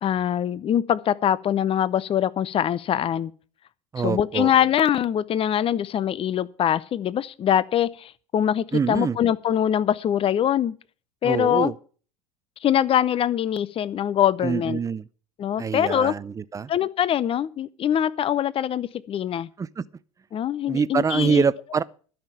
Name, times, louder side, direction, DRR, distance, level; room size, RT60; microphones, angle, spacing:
voice 1, 0.0-3.3 4.0-10.8 11.2-11.7 12.6-14.8 15.4-16.2 16.7-19.5 20.3-21.4, left 10 dB, 30° left, 0.7 m, -23 dB
voice 2, 3.9-4.5 8.7-9.2 11.2-11.7 14.4-15.0 15.6-16.7 19.6-19.8 20.7-21.8, right 6 dB, 20° right, 0.6 m, -25 dB
12.5 x 5.9 x 8.5 m
hypercardioid pair, 85°, 18 cm